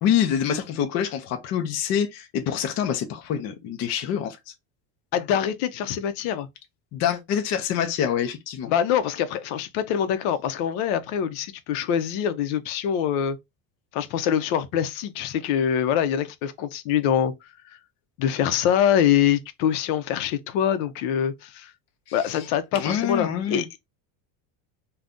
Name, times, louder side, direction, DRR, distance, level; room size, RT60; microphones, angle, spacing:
voice 1, 0.0-4.4 6.9-8.7 22.3-22.5 22.7-23.6, left 9 dB, 40° left, 0.5 m, -26 dB
voice 2, 5.1-6.5 8.6-13.4 13.9-17.3 18.2-21.7 22.1-23.8, left 9 dB, 75° left, 0.7 m, -24 dB
2.6 x 2.3 x 3.5 m
cardioid pair, 150°, 42 cm